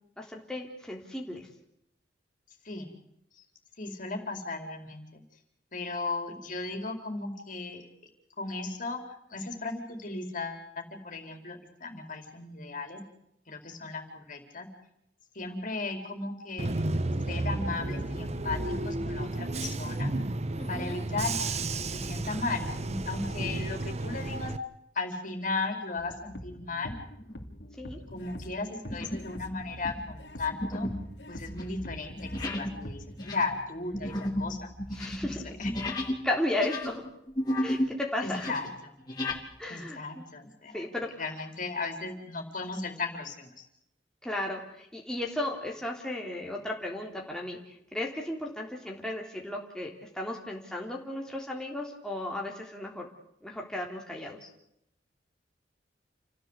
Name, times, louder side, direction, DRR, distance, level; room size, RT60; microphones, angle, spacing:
voice 1, 0.2-1.5 20.6-21.0 27.8-28.0 34.9-35.6 36.2-37.0 37.6-38.5 39.6-40.2 40.7-41.1 44.2-53.1 53.4-54.5, left 1 dB, 5° left, -2 dB, 3.4 m, -35 dB
voice 2, 3.8-5.2 5.7-7.8 8.4-9.0 9.3-13.0 13.5-14.7 15.3-16.7 17.3-20.1 20.7-24.5 24.9-27.0 28.1-30.9 31.3-32.2 32.5-34.7 35.2-35.3 35.6-35.7 38.2-38.7 39.7-40.8 41.2-43.6, left 3 dB, 50° left, 4 dB, 4.5 m, -36 dB
Bus / Engine, 16.6-24.6, right 2 dB, 40° right, 1.1 m, -32 dB
sound 1, 26.0-33.2, equal, 75° left, 2.7 m, -44 dB
sound 2, 27.2-27.5 28.1-28.3 28.9-29.4 29.6-36.2 36.5-37.9 38.2-39.4, left 1 dB, 25° left, 4.3 m, -34 dB
29.5 x 16.0 x 8.2 m, 0.78 s
head